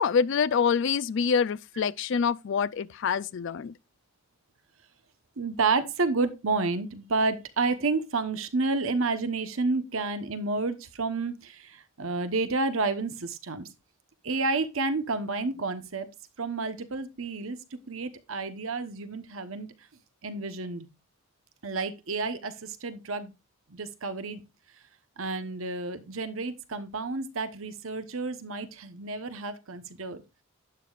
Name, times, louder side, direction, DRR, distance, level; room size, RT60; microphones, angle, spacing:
voice 1, 0.0-3.7, left 6 dB, 55° left, 0.4 m, -26 dB
voice 2, 5.4-13.7 14.2-16.1 16.4-19.7 20.2-20.9 21.6-23.3 23.7-24.4 25.2-30.2, right 3 dB, 70° right, 1.0 m, -30 dB
12.0 x 8.4 x 2.4 m
head